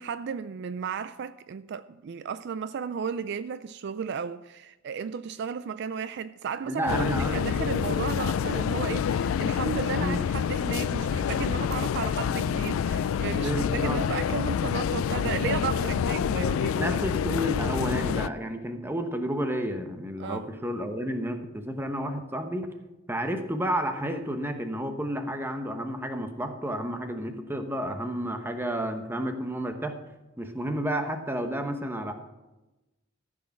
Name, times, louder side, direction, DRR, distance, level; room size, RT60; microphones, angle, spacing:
voice 1, 0.0-17.0 20.2-20.5, right 6 dB, 55° right, 0.3 m, -34 dB
voice 2, 6.7-7.5 9.9-10.2 13.3-14.0 16.7-22.7 23.1-30.0 30.4-32.1, equal, 10° right, 1.0 m, -31 dB
sound 1, 6.9-18.3, left 7 dB, 85° left, 0.3 m, -27 dB
14.0 x 6.4 x 5.8 m
head